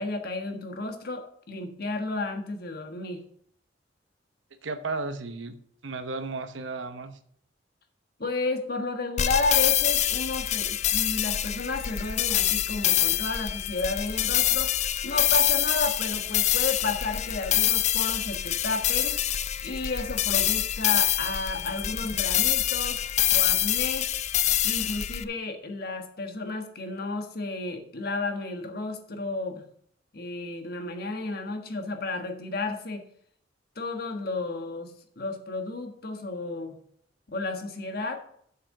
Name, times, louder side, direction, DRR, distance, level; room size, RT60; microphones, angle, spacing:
voice 1, 0.0-3.2 8.2-19.2 19.6-24.1 24.6-29.6 30.1-33.0 33.7-36.8 37.3-38.2, left 3 dB, 55° left, 5 dB, 1.5 m, -32 dB
voice 2, 4.6-5.6 5.8-7.2, right 3 dB, 85° right, 10 dB, 0.9 m, -34 dB
sound 1, 9.2-25.2, left 11 dB, 35° left, 0.4 m, -26 dB
7.6 x 6.8 x 6.4 m, 0.66 s
head